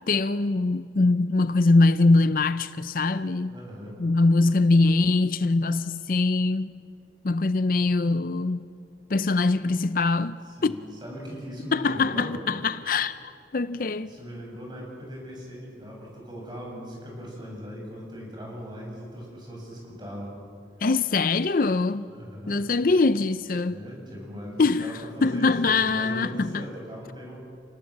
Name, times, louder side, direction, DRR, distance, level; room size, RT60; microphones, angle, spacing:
voice 1, 0.1-3.5 4.0-6.8 7.2-8.7 9.1-10.7 11.7-14.1 20.8-22.1 22.5-23.8 24.6-26.7, left 3 dB, 50° left, 0.5 m, -23 dB
voice 2, 3.5-4.0 10.5-12.3 14.1-20.3 22.1-22.6 23.6-27.4, equal, 25° right, 7.8 m, -39 dB
29.5 x 19.0 x 7.5 m
head